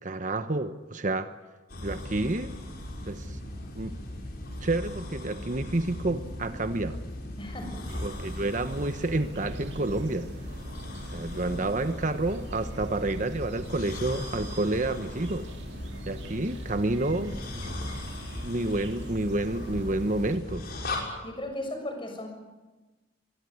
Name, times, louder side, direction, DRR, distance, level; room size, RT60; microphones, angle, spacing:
voice 1, 0.0-1.3 1.8-2.5 3.1-3.4 3.7-4.0 4.6-7.0 8.0-10.3 11.1-15.5 16.1-17.4 18.4-20.6, right 2 dB, 45° right, 10 dB, 1.0 m, -29 dB
sound 1, 1.7-21.0, left 1 dB, 55° left, 6.5 m, -38 dB
voice 2, 7.4-7.9 21.2-22.3, left 1 dB, 25° left, 4 dB, 6.9 m, -36 dB
sound 2, 7.9-20.4, right 1 dB, 65° right, 2.3 m, -45 dB
24.5 x 21.5 x 9.5 m, 1.2 s
head